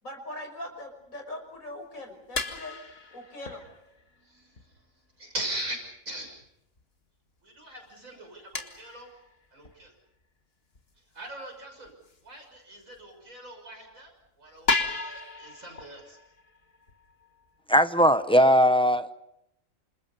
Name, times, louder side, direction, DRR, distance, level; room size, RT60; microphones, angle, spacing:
voice 1, 0.0-2.8 3.1-3.7, left 1 dB, 85° left, 4 dB, 6.1 m, -41 dB
sound 1, 1.5-1.6 2.3-4.7 5.1-5.2 5.7-5.8 6.3-6.4 6.8-6.9 7.9-8.0 8.5-9.9 10.7-10.8 11.3-11.4 11.8-12.2 13.0-13.2 13.5-13.6 14.1-14.2 14.6-18.0, left 3 dB, 45° left, 2.2 m, -35 dB
voice 2, 4.2-4.8 5.2-6.4 7.4-9.1 9.5-9.9 11.1-11.9 12.2-14.1 14.4-16.2, right 1 dB, 85° right, 3 dB, 6.7 m, -40 dB
voice 3, 17.7-19.1, equal, 5° left, 10 dB, 0.7 m, -19 dB
28.5 x 27.0 x 5.5 m, 0.81 s
omnidirectional pair, 1.4 m